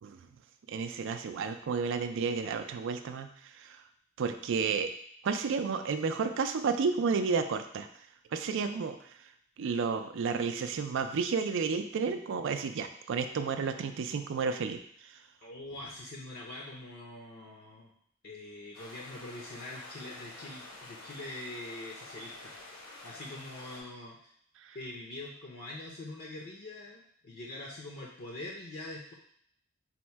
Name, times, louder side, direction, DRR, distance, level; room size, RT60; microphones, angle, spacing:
voice 1, 0.7-3.8 4.2-4.9 5.2-7.9 8.3-9.3 9.6-15.2 24.6-24.8, right 5 dB, 65° right, 8 dB, 0.4 m, -32 dB
voice 2, 15.4-17.9 18.2-22.6 23.0-24.3 24.7-29.1, left 2 dB, 50° left, -2 dB, 0.5 m, -44 dB
sound 1, 18.7-23.8, left 2 dB, 70° left, 0.9 m, -48 dB
4.2 x 2.1 x 4.4 m, 0.65 s
head